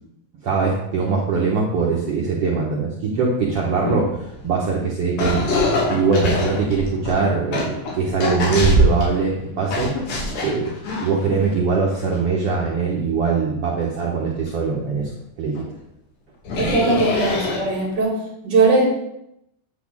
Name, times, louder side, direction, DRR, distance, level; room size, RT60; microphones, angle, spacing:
voice 1, 0.4-4.2 4.4-5.5 5.9-9.9 10.4-10.7 11.0-15.1 15.4-15.7, right 4 dB, 60° right, -3 dB, 1.6 m, -22 dB
sound 1, 3.5-3.6 3.8-4.6 5.2-9.2 9.7-11.6 12.0-12.1 14.5-14.6 15.0-15.1 15.5-15.6 16.4-18.0, equal, 65° left, 3.7 m, -23 dB
voice 2, 16.6-18.8, right 3 dB, 35° right, -1 dB, 2.5 m, -19 dB
9.0 x 4.3 x 7.1 m, 0.82 s
omnidirectional pair, 4.0 m